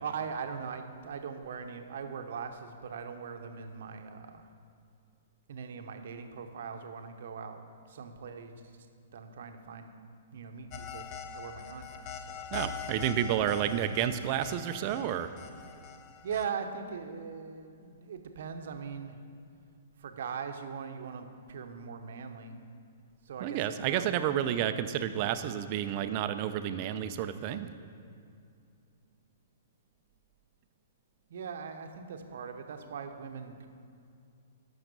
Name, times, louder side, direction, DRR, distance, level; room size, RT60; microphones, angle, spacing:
voice 1, 0.0-4.5 5.5-7.6 7.9-8.5 9.1-9.9 10.3-11.1 11.3-12.5 16.2-19.2 20.0-22.6 23.3-24.1 31.3-33.7, right 6 dB, 65° right, 6 dB, 0.9 m, -40 dB
sound 1, 10.7-16.5, left 7 dB, 40° left, 0.6 m, -43 dB
voice 2, 12.5-15.3 23.4-27.7, right 10 dB, 40° right, 10 dB, 0.6 m, -30 dB
12.0 x 5.8 x 5.4 m, 2.4 s
hypercardioid pair, 125°, 0 cm